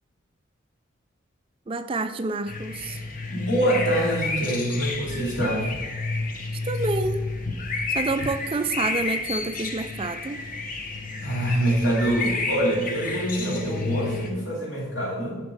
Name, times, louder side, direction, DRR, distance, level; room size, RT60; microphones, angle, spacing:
voice 1, 1.7-3.0 6.5-7.2 7.9-10.4, right 3 dB, 25° right, 10 dB, 0.4 m, -28 dB
sound 1, 2.5-14.3, left 3 dB, 45° left, 1.0 m, -30 dB
voice 2, 3.3-5.7 11.2-15.4, right 1 dB, 75° left, -3 dB, 2.8 m, -25 dB
10.0 x 5.2 x 4.9 m, 1.4 s
head